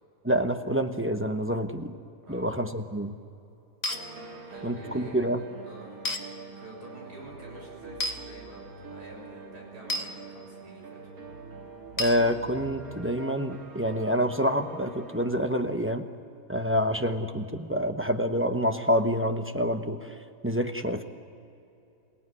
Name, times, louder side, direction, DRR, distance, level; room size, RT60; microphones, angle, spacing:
voice 1, 0.2-1.9 2.3-3.2 4.6-5.4 12.0-16.0 16.5-20.1 20.4-21.0, equal, 10° right, 5 dB, 0.7 m, -27 dB
sound 1, 3.8-4.0 6.0-6.2 8.0-8.2 9.9-10.1 12.0-12.2, left 1 dB, 25° left, 1.3 m, -29 dB
sound 2, 3.9-15.3, right 3 dB, 60° right, 2.3 m, -45 dB
voice 2, 4.3-6.0 6.5-11.0, right 1 dB, 85° right, -1 dB, 7.0 m, -48 dB
27.0 x 17.5 x 9.7 m, 2.8 s
omnidirectional pair, 1.7 m